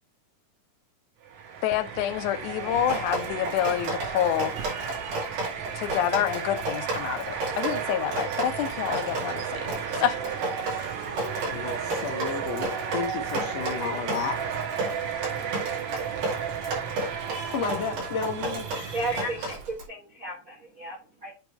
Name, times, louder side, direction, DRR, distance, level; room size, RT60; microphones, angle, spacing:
sound 1, 1.2-19.7, right 7 dB, 70° right, 2.3 m, -34 dB
voice 1, 1.6-4.5 5.8-9.7 10.0-10.2 10.8-10.9, left 10 dB, 80° left, 2.0 m, -27 dB
Drip, 2.8-19.9, right 2 dB, 90° right, 4.1 m, -33 dB
voice 2, 11.5-14.4 17.4-19.6, left 5 dB, 60° left, 2.4 m, -32 dB
voice 3, 18.9-19.5 19.9-21.3, right 2 dB, 50° right, 1.0 m, -34 dB
8.2 x 3.6 x 4.4 m
omnidirectional pair, 3.6 m